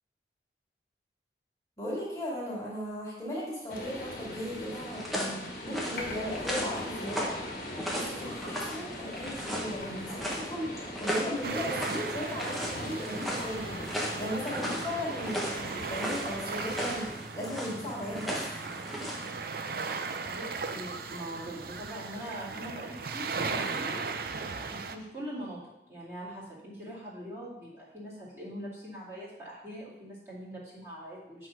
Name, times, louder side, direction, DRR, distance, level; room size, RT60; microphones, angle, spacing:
voice 1, 1.8-7.3 8.0-10.7 11.0-18.4, equal, 20° left, -6 dB, 2.6 m, -36 dB
sound 1, 3.7-17.1, left 1 dB, 50° left, 1.7 m, -41 dB
sound 2, 4.2-19.3, equal, ahead, 1.2 m, -37 dB
sound 3, 11.4-25.0, right 4 dB, 55° right, 0.5 m, -37 dB
voice 2, 20.3-24.0 24.7-25.6 25.9-31.5, equal, 15° right, -10 dB, 2.5 m, -42 dB
9.0 x 3.9 x 6.0 m, 0.89 s
head